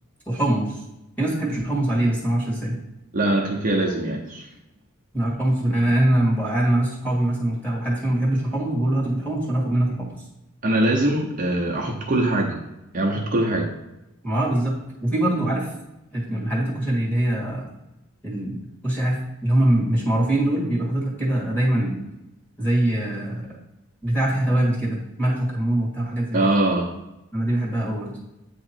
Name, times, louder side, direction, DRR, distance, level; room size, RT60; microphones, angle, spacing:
voice 1, 0.3-0.8 1.2-2.8 5.1-10.1 14.2-15.7 16.1-17.7 18.2-22.0 22.6-23.5 24.0-26.5 27.3-28.1, right 1 dB, 5° left, -3 dB, 1.6 m, -23 dB
voice 2, 3.1-4.5 10.6-12.6 12.9-13.7 26.3-26.9, right 1 dB, 40° right, -1 dB, 0.7 m, -22 dB
8.5 x 2.9 x 4.3 m, 0.92 s
head